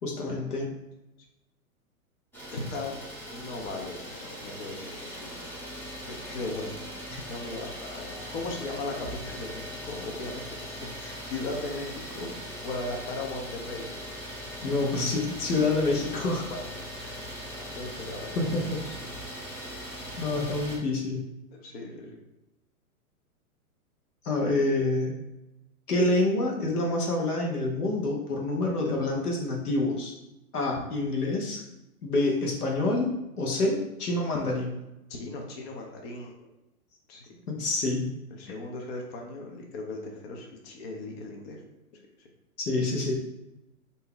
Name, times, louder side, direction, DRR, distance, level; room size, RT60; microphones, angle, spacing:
voice 1, 0.0-0.8 14.6-16.5 18.3-18.8 20.2-21.3 24.2-25.1 25.9-30.1 30.5-31.6 32.0-33.1 33.4-34.7 37.5-38.2 42.6-43.1, left 2 dB, 90° left, 0 dB, 1.0 m, -27 dB
Idling, 2.3-20.8, equal, 5° left, 0.7 m, -40 dB
voice 2, 2.5-3.0 3.3-5.5 6.0-6.8 7.3-12.4 12.6-13.9 16.5-17.3 17.7-18.3 21.5-22.2 30.7-30.8 35.1-36.3 37.1-37.4 38.4-41.6, left 2 dB, 45° left, 1 dB, 0.7 m, -38 dB
2.7 x 2.2 x 3.7 m, 0.93 s
hypercardioid pair, 125°, 44 cm